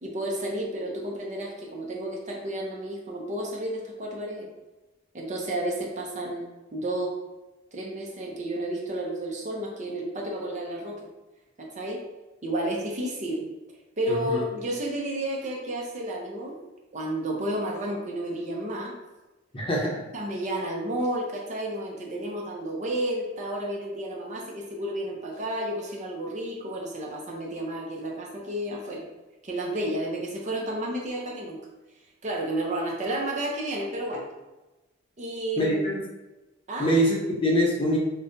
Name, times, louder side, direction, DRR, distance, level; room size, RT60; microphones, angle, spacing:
voice 1, 0.0-4.5 5.1-6.4 6.7-7.2 7.7-11.1 11.6-12.0 12.4-13.5 14.0-16.6 16.9-18.9 20.1-29.0 29.4-31.6 32.2-34.3 35.2-35.9 36.7-36.9, right 1 dB, 40° right, -2 dB, 0.7 m, -31 dB
voice 2, 14.1-14.4 19.5-20.0 35.6-36.0 36.8-38.0, equal, 25° left, -2 dB, 0.8 m, -24 dB
5.3 x 2.2 x 2.6 m, 1.1 s
head